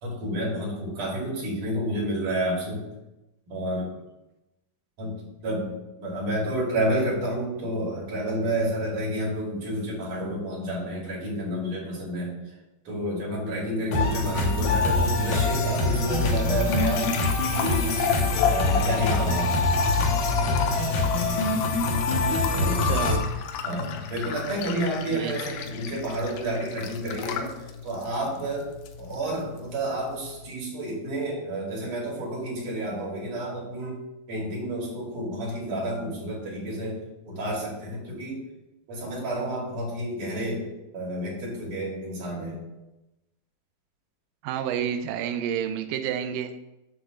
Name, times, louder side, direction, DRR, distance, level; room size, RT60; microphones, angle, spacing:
voice 1, 0.0-2.8 3.5-3.9 5.0-5.1 5.4-12.3 12.9-17.1 17.5-18.0 18.4-19.5 22.5-22.9 23.6-27.5 27.8-28.7 29.0-34.0 34.3-37.0 37.3-38.4 38.9-40.7 40.9-42.6, right 1 dB, 60° right, -5 dB, 3.9 m, -30 dB
sound 1, 13.9-23.2, left 2 dB, 65° left, 2.3 m, -24 dB
sound 2, 15.5-30.5, left 7 dB, 80° left, 2.5 m, -34 dB
voice 2, 22.6-23.2 25.1-25.3 44.4-46.5, right 9 dB, 85° right, 7 dB, 1.8 m, -30 dB
8.0 x 3.7 x 6.5 m, 0.96 s
omnidirectional pair, 4.3 m